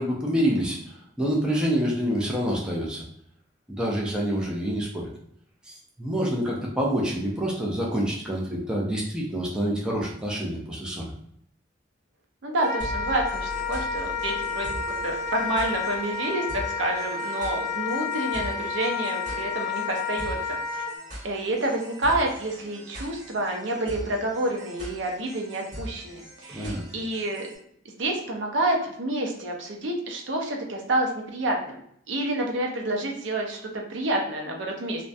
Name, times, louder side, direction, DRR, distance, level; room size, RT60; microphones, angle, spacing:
voice 1, 0.0-3.0 3.7-5.1 5.7-11.0 26.5-26.8, equal, 5° right, -4 dB, 0.4 m, -27 dB
voice 2, 12.4-20.8 21.2-27.5 28.0-31.8 32.1-35.1, right 1 dB, 70° right, 1 dB, 0.5 m, -28 dB
Wind instrument woodwind instrument, 12.6-20.9, left 5 dB, 50° left, 0.6 m, -30 dB
sound 1, 12.8-27.6, equal, 40° right, 1.3 m, -41 dB
2.3 x 2.1 x 2.6 m, 0.70 s
head